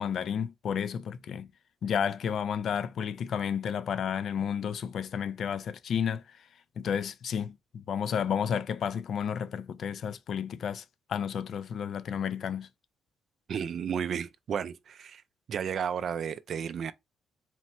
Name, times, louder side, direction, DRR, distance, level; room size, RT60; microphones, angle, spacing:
voice 1, 0.0-1.5 1.8-6.2 6.8-12.7, left 8 dB, 60° left, 0.4 m, -32 dB
voice 2, 13.5-15.2 15.5-16.9, right 7 dB, 60° right, 0.3 m, -33 dB
4.2 x 2.0 x 4.3 m
cardioid pair, 90°, 0 cm